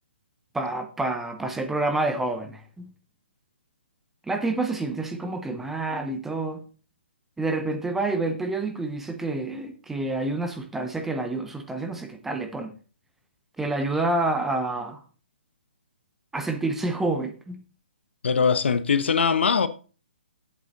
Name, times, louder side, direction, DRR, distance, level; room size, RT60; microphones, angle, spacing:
voice 1, 0.5-2.9 4.3-6.6 7.4-12.7 13.6-15.0 16.3-17.6, right 2 dB, 5° right, 0.6 m, -28 dB
voice 2, 18.2-19.7, left 6 dB, 75° left, 0.8 m, -21 dB
7.9 x 7.0 x 3.9 m
hypercardioid pair, 160°, 6 cm